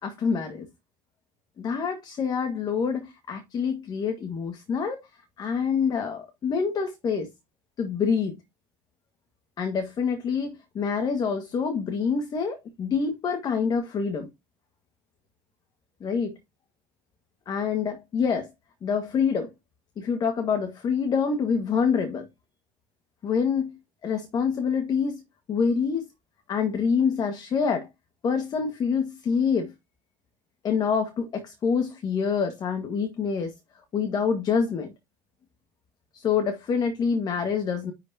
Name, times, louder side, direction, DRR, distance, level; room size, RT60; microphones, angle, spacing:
voice 1, 0.0-0.7 1.6-5.1 5.4-7.3 7.8-8.4 9.6-14.3 16.0-16.4 17.4-18.5 18.8-19.5 20.0-22.3 23.2-23.7 24.0-25.2 25.5-26.1 26.5-27.9 28.2-29.7 30.6-33.5 33.9-34.9 36.1-37.9, left 6 dB, 40° left, 1.7 m, -26 dB
10.0 x 5.0 x 2.8 m
supercardioid pair, 115°, 11 cm